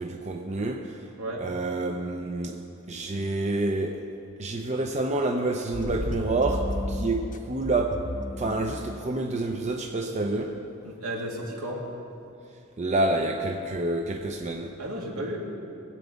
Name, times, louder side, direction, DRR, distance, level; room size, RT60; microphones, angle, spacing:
voice 1, 0.0-1.0 1.4-2.6 2.9-4.0 4.4-8.0 8.4-10.5 12.8-14.7, right 2 dB, 30° right, 3 dB, 0.7 m, -28 dB
voice 2, 1.2-1.5 10.8-11.8 14.8-15.4, right 1 dB, 70° right, -2 dB, 2.4 m, -33 dB
sound 1, 5.7-9.1 10.0-10.1, left 1 dB, 35° left, 0.8 m, -33 dB
21.0 x 8.1 x 5.2 m, 2.8 s
head